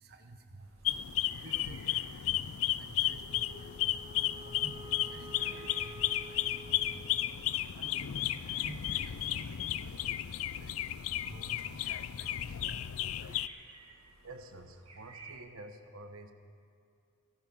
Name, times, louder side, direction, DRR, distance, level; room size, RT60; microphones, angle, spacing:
voice 1, 0.0-12.7 13.2-13.3 13.8-14.3, right 2 dB, 50° right, 6 dB, 1.0 m, -54 dB
sound 1, 0.6-15.4, right 3 dB, 90° right, 1.8 m, -58 dB
sound 2, 0.8-13.5, left 12 dB, 70° left, 0.4 m, -34 dB
Wind instrument woodwind instrument, 3.2-7.7, right 1 dB, 20° right, 0.5 m, -50 dB
voice 2, 14.2-16.3, right 2 dB, 70° right, 7 dB, 1.1 m, -49 dB
15.0 x 14.5 x 5.3 m, 2.4 s
head